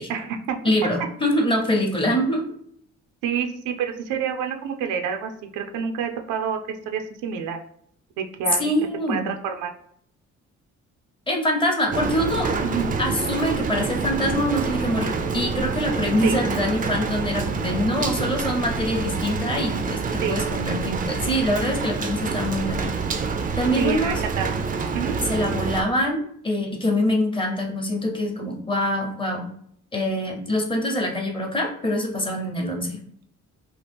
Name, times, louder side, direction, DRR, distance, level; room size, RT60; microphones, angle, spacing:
voice 1, 0.1-0.6 3.2-6.6 6.9-7.6 8.2-8.7 9.1-9.7 12.6-12.9 16.2-16.4 20.2-20.4 23.8-24.5 24.9-25.1, right 7 dB, 90° right, 5 dB, 0.5 m, -28 dB
voice 2, 0.6-2.4 8.6-9.2 11.3-12.5 13.0-22.9 23.6-24.2 25.2-29.5 29.9-33.0, equal, 15° left, 1 dB, 0.7 m, -24 dB
Rain, 11.9-25.8, right 4 dB, 30° right, 0.4 m, -27 dB
2.9 x 2.4 x 3.4 m, 0.67 s
cardioid pair, 90°, 30 cm